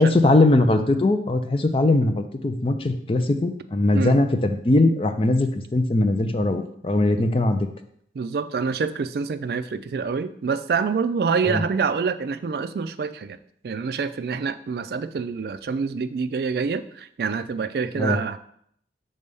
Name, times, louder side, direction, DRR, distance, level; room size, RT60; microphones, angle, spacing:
voice 1, 0.0-7.7 11.4-11.6 18.0-18.2, left 2 dB, 30° left, 7 dB, 0.4 m, -20 dB
voice 2, 8.1-13.4 13.6-18.4, right 5 dB, 60° right, 11 dB, 0.3 m, -26 dB
5.3 x 3.3 x 5.3 m, 0.68 s
head